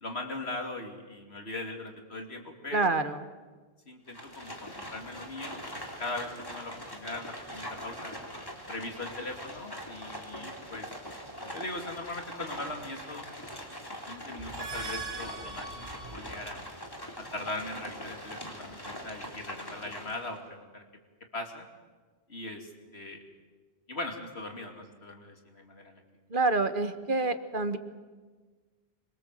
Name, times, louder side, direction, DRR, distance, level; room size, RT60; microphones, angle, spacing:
voice 1, 0.0-3.0 3.9-5.6 6.0-8.1 8.7-10.9 11.5-13.2 14.1-16.6 17.2-20.8 21.3-21.7 22.3-23.2 23.9-26.0, left 2 dB, 90° left, 3 dB, 3.2 m, -40 dB
voice 2, 2.7-3.2 26.3-27.8, right 3 dB, 55° right, 10 dB, 1.5 m, -27 dB
Livestock farm animals working animals, 4.1-20.4, equal, 20° left, 3.3 m, -42 dB
sound 1, 14.4-16.6, right 3 dB, 70° right, 4.7 m, -40 dB
25.5 x 23.0 x 7.7 m, 1.4 s
omnidirectional pair, 1.0 m